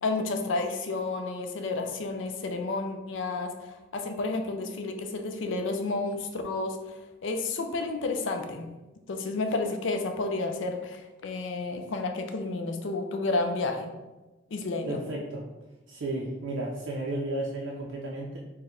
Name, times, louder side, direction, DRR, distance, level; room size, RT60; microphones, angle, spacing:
voice 1, 0.0-6.8 7.2-8.7 9.1-13.9 14.5-15.0, left 3 dB, 75° left, 5 dB, 0.4 m, -31 dB
voice 2, 14.9-15.5 15.9-18.4, right 2 dB, 70° right, -3 dB, 0.5 m, -33 dB
4.3 x 2.1 x 3.6 m, 1.1 s
head